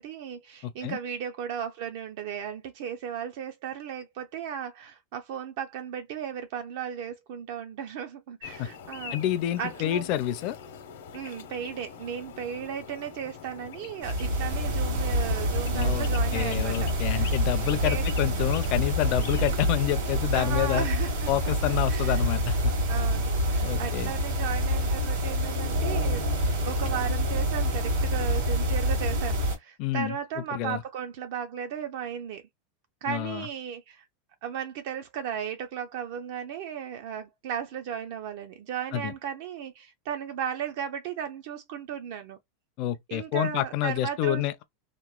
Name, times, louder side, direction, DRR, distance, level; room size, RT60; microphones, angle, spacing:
voice 1, 0.0-9.2 9.6-10.1 11.1-17.3 17.8-18.0 20.3-22.2 22.9-26.2 26.6-32.4 33.0-34.0 34.4-42.4 43.1-44.4, right 8 dB, 50° right, 0.4 m, -35 dB
voice 2, 0.6-1.0 8.6-8.7 9.1-10.6 15.7-16.1 16.3-20.9 21.3-22.7 23.6-24.1 29.8-30.2 30.5-30.8 33.1-33.5 38.9-39.1 42.8-44.6, left 12 dB, 35° left, 0.4 m, -28 dB
sound 1, 8.4-19.5, left 7 dB, 80° left, 0.8 m, -44 dB
sound 2, 14.0-29.6, equal, 65° right, 1.3 m, -27 dB
sound 3, 14.2-20.3, equal, 85° right, 1.4 m, -36 dB
2.9 x 2.0 x 2.2 m
supercardioid pair, 175°, 0 cm